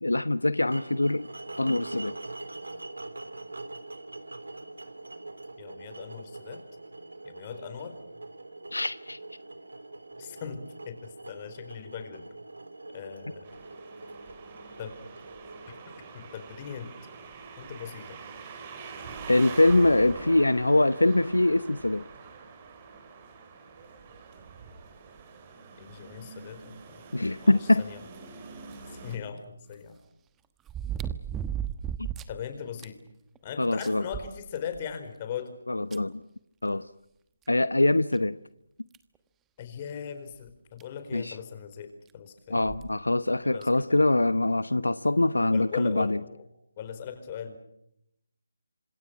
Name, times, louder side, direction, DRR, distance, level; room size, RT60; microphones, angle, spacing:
voice 1, 0.0-1.3 1.6-2.2 8.7-9.2 19.3-22.0 27.1-27.8 32.0-32.1 33.6-34.0 35.7-36.2 36.6-36.9 37.5-38.4 41.1-41.4 42.5-46.2, left 2 dB, 85° left, 15 dB, 1.0 m, -23 dB
sound 1, 0.7-16.8, right 2 dB, 75° right, 3.8 m, -43 dB
voice 2, 5.6-6.6 7.2-8.0 10.2-12.2 12.9-13.6 14.8-15.0 16.1-16.9 17.6-18.1 25.8-27.0 27.4-28.0 28.9-30.0 32.3-33.0 33.4-35.5 39.6-42.6 43.4-44.0 45.5-46.4 46.8-47.6, left 8 dB, 30° left, 9 dB, 4.5 m, -39 dB
sound 2, 13.4-29.2, right 5 dB, 25° right, 4.7 m, -45 dB
sound 3, 28.7-28.8 30.7-32.4 32.8-32.9 33.3-33.4 33.8-34.9 35.9-36.0 37.5-37.6 38.1-38.2 38.9-39.2 40.5-40.6 40.8-40.9 42.6-42.9 43.6-43.7, right 9 dB, 10° right, 1.2 m, -34 dB
28.0 x 26.5 x 6.0 m, 0.78 s
figure-of-eight pair, 155°, 0 cm